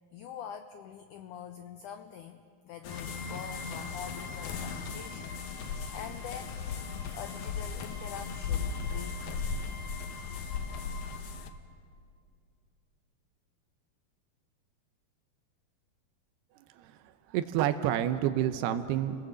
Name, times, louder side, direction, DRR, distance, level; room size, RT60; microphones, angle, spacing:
voice 1, 0.1-6.9 7.1-9.4, left 8 dB, 85° left, 8 dB, 1.8 m, -45 dB
sound 1, 2.8-11.5, left 5 dB, 65° left, 2.0 m, -37 dB
sound 2, 2.9-11.2, left 2 dB, 45° right, 5.1 m, -48 dB
voice 2, 17.3-19.2, right 11 dB, 90° right, 9 dB, 2.8 m, -29 dB
30.0 x 18.5 x 7.6 m, 2.4 s
omnidirectional pair, 4.5 m